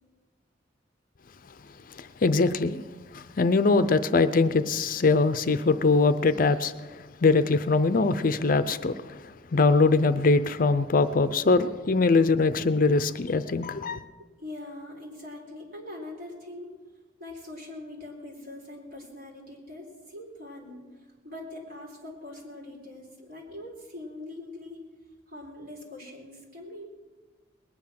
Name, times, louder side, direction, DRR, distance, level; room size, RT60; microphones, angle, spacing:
voice 1, 2.0-2.8 3.1-6.7 7.2-9.2 9.5-14.0, left 3 dB, 45° left, 0.5 m, -22 dB
voice 2, 14.2-16.7 17.2-20.8 21.2-24.8 25.3-26.8, left 1 dB, 50° right, 3.8 m, -42 dB
20.0 x 9.9 x 5.8 m
head